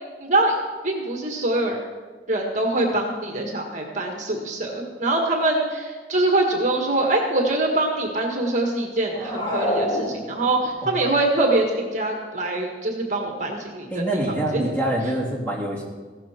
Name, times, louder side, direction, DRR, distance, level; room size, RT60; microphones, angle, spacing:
voice 1, 0.2-0.5 0.8-1.8 2.3-14.2 14.5-14.7, right 2 dB, 45° right, 1 dB, 1.6 m, -24 dB
sound 1, 9.1-10.7, equal, 30° left, 3.1 m, -26 dB
voice 2, 13.9-15.8, right 1 dB, 5° left, -4 dB, 3.0 m, -25 dB
16.0 x 12.5 x 4.4 m, 1.4 s
head